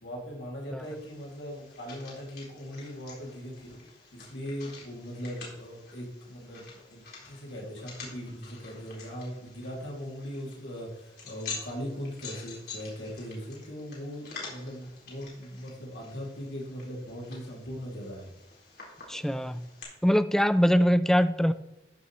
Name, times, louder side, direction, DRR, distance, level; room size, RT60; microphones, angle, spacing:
voice 1, 0.0-3.7 4.1-18.3, equal, 90° left, 2.6 m, -39 dB
sound 1, 0.8-19.8, left 4 dB, 60° left, 4.1 m, -47 dB
voice 2, 19.1-19.6 20.0-21.5, equal, 5° left, 0.4 m, -23 dB
14.0 x 6.9 x 3.1 m
head